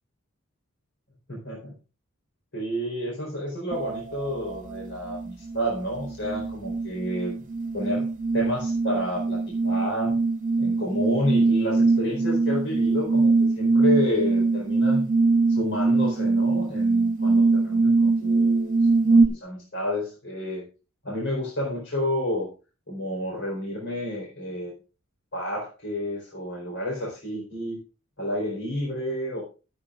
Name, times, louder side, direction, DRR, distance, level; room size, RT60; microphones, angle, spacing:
voice 1, 1.3-1.7 2.5-7.3 7.7-8.1 8.3-10.2 10.6-15.1 15.5-18.8 19.1-20.6 21.0-22.5 22.9-24.7 25.3-27.8 28.2-29.4, left 1 dB, 60° left, -2 dB, 4.2 m, -30 dB
sound 1, 3.7-4.0 4.5-19.3, right 3 dB, 40° right, 1.1 m, -22 dB
21.0 x 8.7 x 2.5 m, 0.33 s
head